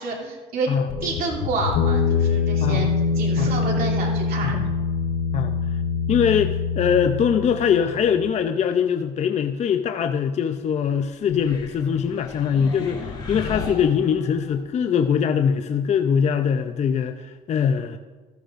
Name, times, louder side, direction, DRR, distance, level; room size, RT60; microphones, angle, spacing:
voice 1, 0.0-0.7 1.0-2.9 3.2-4.6, right 4 dB, 60° right, -1 dB, 2.9 m, -29 dB
sound 1, 0.9-8.3, left 5 dB, 80° left, 1.0 m, -24 dB
voice 2, 2.6-2.9 3.4-3.5 4.4-4.7 5.3-5.6 6.1-18.0, left 7 dB, 40° left, 7 dB, 0.6 m, -22 dB
sound 2, 11.3-14.6, left 2 dB, 25° left, 3.0 m, -36 dB
14.0 x 14.0 x 2.6 m, 1.4 s
cardioid pair, 110°, 17 cm